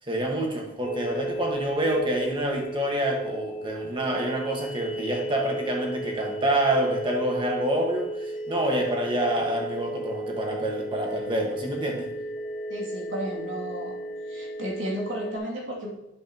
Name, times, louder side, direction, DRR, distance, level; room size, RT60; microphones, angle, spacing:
voice 1, 0.1-12.1, right 1 dB, 25° right, 1 dB, 1.5 m, -27 dB
sound 1, 0.8-15.4, right 1 dB, 40° left, 0.9 m, -34 dB
voice 2, 12.7-14.0 14.3-15.9, equal, 85° right, -4 dB, 2.4 m, -33 dB
10.0 x 7.6 x 2.9 m, 0.87 s
head